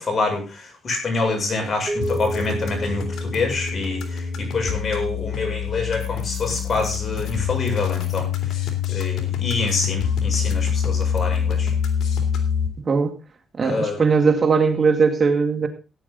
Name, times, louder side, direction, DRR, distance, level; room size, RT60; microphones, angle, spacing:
voice 1, 0.0-11.7 13.6-14.0, left 3 dB, 40° left, 2 dB, 7.4 m, -26 dB
sound 1, 1.9-4.4, right 1 dB, 25° right, 1.9 m, -31 dB
sound 2, 2.0-12.7, left 7 dB, 70° left, 3.2 m, -25 dB
voice 2, 12.8-13.2 13.6-15.7, right 5 dB, 40° right, 8 dB, 1.9 m, -19 dB
16.5 x 9.9 x 4.0 m, 0.31 s
cardioid pair, 90°, 0 cm